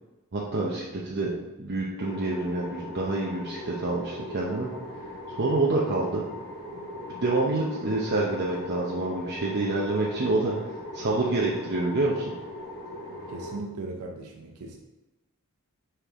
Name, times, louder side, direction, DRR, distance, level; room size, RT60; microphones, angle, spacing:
voice 1, 0.3-1.3 1.6-4.7 5.3-6.2 7.2-10.5 10.9-12.3, right 2 dB, 50° right, -4 dB, 0.8 m, -27 dB
sound 1, 2.0-13.6, left 1 dB, 45° left, 1.4 m, -39 dB
voice 2, 13.3-14.8, right 2 dB, 85° right, 2 dB, 0.7 m, -38 dB
6.7 x 4.6 x 3.7 m, 1.1 s
head